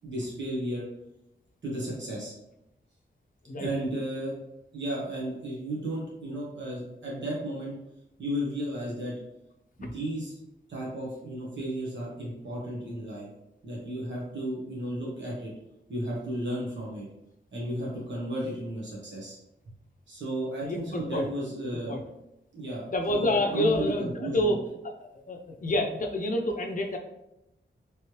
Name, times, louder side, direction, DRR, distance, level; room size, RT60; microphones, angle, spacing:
voice 1, 0.0-0.8 1.6-2.3 3.6-4.3 4.7-7.7 8.2-9.1 9.8-10.4 10.7-13.3 13.6-15.5 15.9-17.0 17.5-19.4 20.1-22.0 22.5-24.5, right 1 dB, 70° right, -5 dB, 1.1 m, -34 dB
voice 2, 20.6-21.3 21.9-22.0 22.9-24.6 25.1-27.0, left 1 dB, 45° left, 3 dB, 0.5 m, -28 dB
3.2 x 3.1 x 3.0 m, 0.87 s
wide cardioid pair, 115°, 20 cm